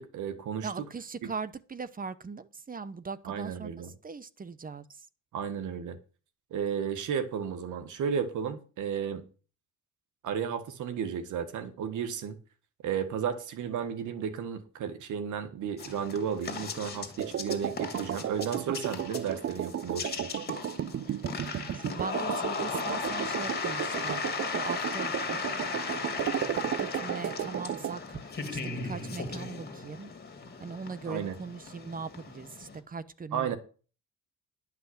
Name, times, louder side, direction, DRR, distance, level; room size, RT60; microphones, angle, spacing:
voice 1, 0.0-0.7 3.3-3.9 5.3-6.0 6.5-9.2 10.2-12.4 12.8-20.3 31.1-31.3 33.3-33.6, right 7 dB, 80° right, 1.7 m, -33 dB
voice 2, 0.6-5.1 21.7-25.7 26.8-30.1 30.6-33.5, right 5 dB, 30° right, 1.0 m, -40 dB
sound 1, 15.8-32.8, left 4 dB, 35° left, 2.7 m, -37 dB
sound 2, 17.2-28.0, right 10 dB, 50° right, 0.6 m, -34 dB
11.0 x 5.9 x 7.9 m
cardioid pair, 90°, 30 cm